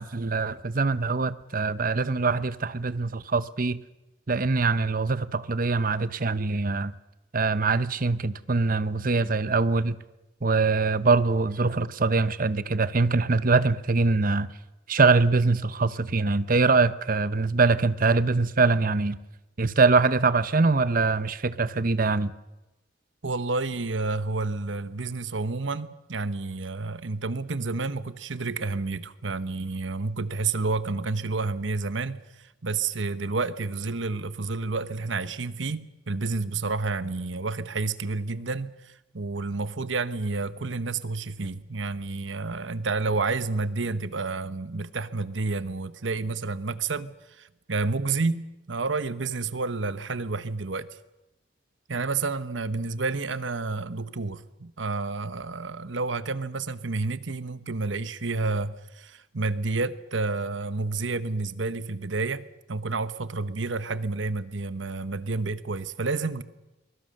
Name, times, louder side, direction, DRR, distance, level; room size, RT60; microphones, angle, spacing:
voice 1, 0.0-3.8 4.3-6.9 7.3-10.0 10.4-14.5 14.9-19.2 19.6-22.3, right 3 dB, 50° right, 0.9 m, -23 dB
voice 2, 23.2-32.2 32.6-38.7 39.1-50.9 51.9-66.4, right 3 dB, 85° right, 1.1 m, -30 dB
23.0 x 21.5 x 6.6 m
head